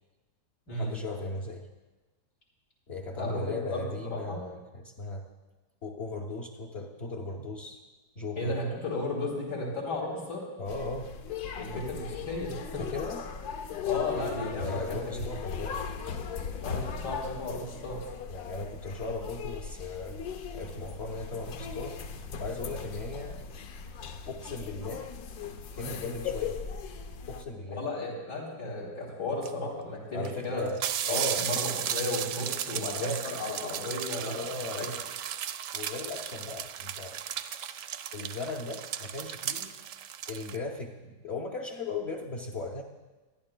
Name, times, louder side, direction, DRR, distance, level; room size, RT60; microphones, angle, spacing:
voice 1, 0.7-1.6 2.9-5.2 5.8-7.8 8.2-8.6 10.6-11.1 11.7-11.8 12.8-13.2 14.6-16.3 18.3-20.2 20.5-21.9 22.4-23.4 24.3-25.0 25.7-26.6 27.3-27.8 30.1-30.8 31.1-31.5 32.7-33.2 34.2-35.0 35.7-37.2 38.1-39.7 40.3-42.8, left 3 dB, 50° left, -1 dB, 0.9 m, -37 dB
voice 2, 3.7-4.4 8.4-10.4 11.5-12.8 13.8-15.3 16.6-18.0 27.7-30.6 31.1-34.9, left 2 dB, 90° left, -5 dB, 3.4 m, -34 dB
sound 1, 10.6-27.4, left 6 dB, 70° left, 1.2 m, -38 dB
sound 2, 29.4-29.5 30.2-30.3 30.6-40.6, right 9 dB, 70° right, 0.8 m, -35 dB
21.5 x 11.0 x 2.2 m, 1.2 s
omnidirectional pair, 1.8 m